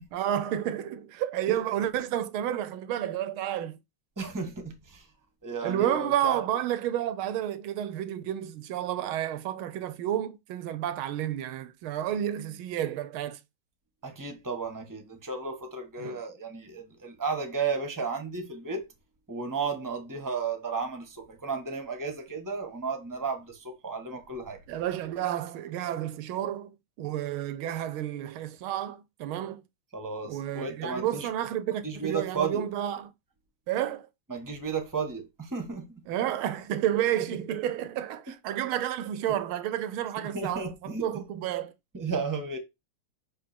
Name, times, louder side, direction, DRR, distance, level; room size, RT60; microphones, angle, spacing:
voice 1, 0.1-3.8 5.6-13.4 16.0-16.2 24.7-29.6 30.2-33.1 33.7-34.1 36.1-41.7, right 11 dB, 85° right, 1.5 m, -31 dB
voice 2, 4.2-5.0 5.4-6.4 14.0-18.9 19.3-24.6 29.9-31.3 31.8-32.7 34.3-35.9 40.3-41.3 41.9-42.6, right 4 dB, 10° right, 1.2 m, -33 dB
6.0 x 5.1 x 4.4 m
omnidirectional pair, 2.3 m